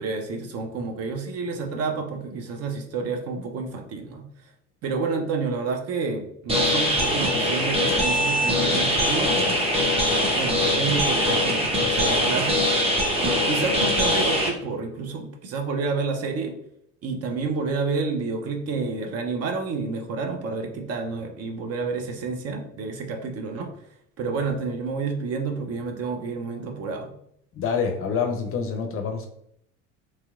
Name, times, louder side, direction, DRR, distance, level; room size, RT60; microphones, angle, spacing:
voice 1, 0.0-4.2 4.8-9.3 10.3-12.7 13.2-16.5 17.0-23.7 24.2-27.1, right 4 dB, 40° right, 4 dB, 0.6 m, -29 dB
sound 1, 6.5-14.5, equal, 15° right, 0.9 m, -22 dB
voice 2, 27.5-29.3, left 6 dB, 40° left, 5 dB, 0.5 m, -26 dB
3.0 x 2.8 x 2.4 m, 0.72 s
hypercardioid pair, 75°, 36 cm